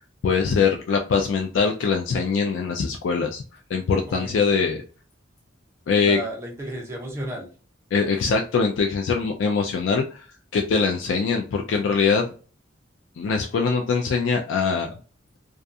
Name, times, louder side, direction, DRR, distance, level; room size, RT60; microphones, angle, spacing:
voice 1, 0.2-3.4 3.7-4.8 5.9-6.2 7.9-10.3 10.5-12.3 13.2-14.9, left 5 dB, 70° left, 3 dB, 0.3 m, -22 dB
voice 2, 4.1-4.6 6.0-7.5, equal, 15° right, -1 dB, 0.7 m, -34 dB
2.4 x 2.3 x 2.6 m, 0.37 s
head